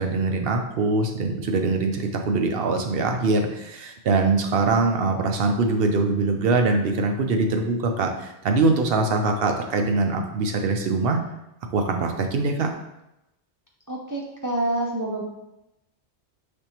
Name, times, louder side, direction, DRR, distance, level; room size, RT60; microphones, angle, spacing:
voice 1, 0.0-11.2 11.7-12.7, right 3 dB, 60° right, 4 dB, 0.7 m, -23 dB
voice 2, 13.9-15.2, right 1 dB, 25° right, -3 dB, 0.4 m, -27 dB
5.2 x 3.4 x 2.9 m, 0.89 s
omnidirectional pair, 1.2 m